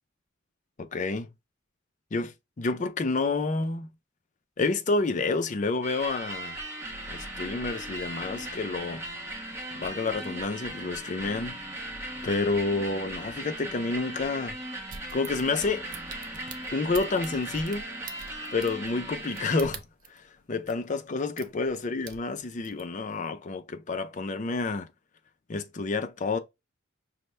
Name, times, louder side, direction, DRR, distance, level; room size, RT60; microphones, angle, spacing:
voice 1, 0.8-1.3 2.1-3.9 4.6-6.6 7.1-9.0 9.7-11.6 12.2-14.6 15.1-15.8 16.7-17.9 18.5-19.8 20.1-20.2 20.5-24.9 25.5-26.4, left 3 dB, 40° left, 0.5 m, -29 dB
sound 1, 5.8-19.7, right 1 dB, 15° right, 0.9 m, -38 dB
sound 2, 14.9-20.2 20.6-20.7 21.4-21.7 22.0-22.8 23.2-23.3, right 6 dB, 45° right, 0.5 m, -44 dB
5.4 x 2.1 x 3.2 m
head